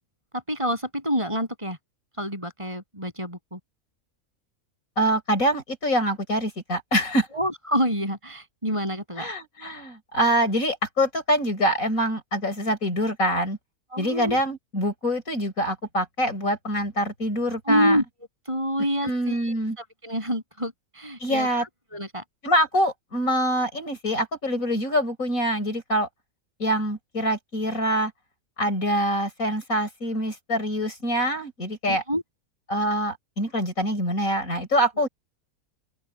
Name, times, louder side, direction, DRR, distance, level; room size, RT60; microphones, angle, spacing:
voice 1, 0.3-1.8 2.2-3.6 7.3-9.3 13.9-14.4 17.7-18.0 18.4-21.5 21.9-22.2 31.9-32.2, equal, 20° right, 7.8 m, -27 dB
voice 2, 5.0-7.3 9.2-13.6 14.0-18.0 19.0-19.8 21.2-21.6 22.4-26.1 26.6-28.1 28.6-32.0 32.7-35.1, equal, 65° left, 6.0 m, -25 dB
open air
omnidirectional pair, 1.5 m